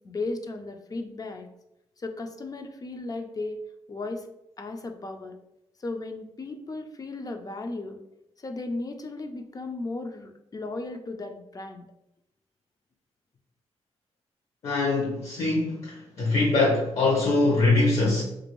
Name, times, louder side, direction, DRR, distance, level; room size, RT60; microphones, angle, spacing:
voice 1, 0.0-1.5 2.0-3.6 3.9-4.3 4.6-5.3 5.8-8.0 8.4-11.8, left 2 dB, 35° left, 5 dB, 0.4 m, -35 dB
voice 2, 14.6-18.2, left 2 dB, 65° left, -4 dB, 0.8 m, -23 dB
2.9 x 2.6 x 3.0 m, 0.83 s
cardioid pair, 85°, 11 cm